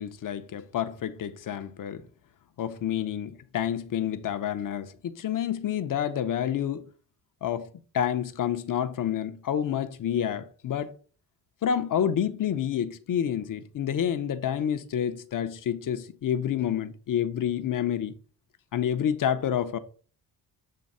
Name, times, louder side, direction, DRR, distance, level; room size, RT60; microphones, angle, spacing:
voice 1, 0.0-2.0 2.6-6.9 7.4-7.7 7.9-10.9 11.6-18.1 18.7-19.8, left 9 dB, 55° left, 0.7 m, -28 dB
7.6 x 3.4 x 5.4 m
wide cardioid pair, 135°, 38 cm